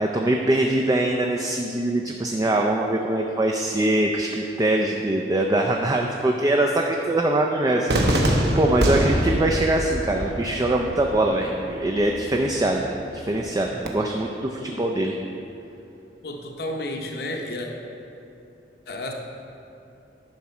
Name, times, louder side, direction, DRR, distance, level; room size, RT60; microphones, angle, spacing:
voice 1, 0.0-12.8 13.1-15.1, right 1 dB, 20° right, 1 dB, 0.4 m, -23 dB
Cheering / Fireworks, 7.9-13.9, right 1 dB, 65° right, 0.9 m, -26 dB
voice 2, 16.2-17.7 18.9-19.1, left 1 dB, 60° left, 1 dB, 0.8 m, -31 dB
10.5 x 6.0 x 4.3 m, 2.8 s
head